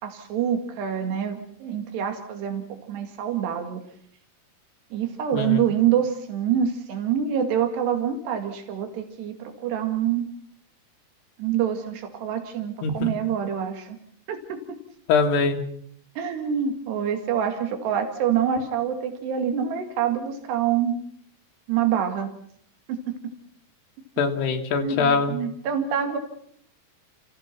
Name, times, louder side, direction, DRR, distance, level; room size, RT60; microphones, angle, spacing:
voice 1, 0.0-3.8 4.9-10.3 11.4-14.0 14.3-14.8 16.2-20.9 21.7-22.3 22.9-23.3 24.8-26.2, right 8 dB, 90° right, 6 dB, 4.2 m, -26 dB
voice 2, 5.3-5.7 12.8-13.1 15.1-15.6 24.2-25.3, left 5 dB, 85° left, 3 dB, 4.0 m, -23 dB
30.0 x 16.0 x 5.9 m, 0.64 s
omnidirectional pair, 4.7 m